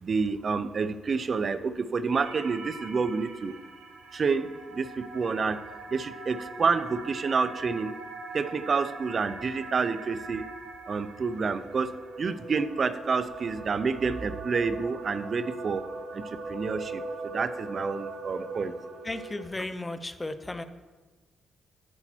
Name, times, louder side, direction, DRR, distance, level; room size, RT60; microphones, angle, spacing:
voice 1, 0.0-3.5 4.1-5.6 5.9-7.9 8.3-10.5 10.9-11.9 12.2-15.8 16.1-18.7, right 5 dB, 40° right, 12 dB, 0.6 m, -29 dB
sound 1, 2.1-19.4, right 3 dB, 90° right, 1.5 m, -41 dB
voice 2, 19.0-20.6, left 2 dB, 15° left, 11 dB, 0.6 m, -35 dB
10.0 x 8.6 x 4.5 m, 1.3 s
cardioid pair, 120°, 0 cm